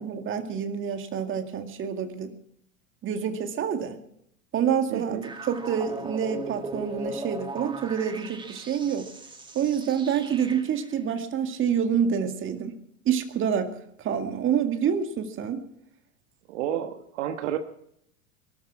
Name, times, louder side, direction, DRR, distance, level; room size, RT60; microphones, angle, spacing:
voice 1, 0.0-2.3 3.0-4.0 4.5-5.2 5.5-9.1 9.5-12.8 13.1-13.7 14.0-15.6, right 8 dB, 30° right, 6 dB, 2.1 m, -27 dB
voice 2, 4.9-5.2 16.5-17.6, right 10 dB, 60° right, 7 dB, 1.5 m, -30 dB
sound 1, 5.2-10.9, right 2 dB, 10° right, 1.7 m, -38 dB
23.0 x 13.0 x 4.8 m, 0.73 s
figure-of-eight pair, 85°, 39 cm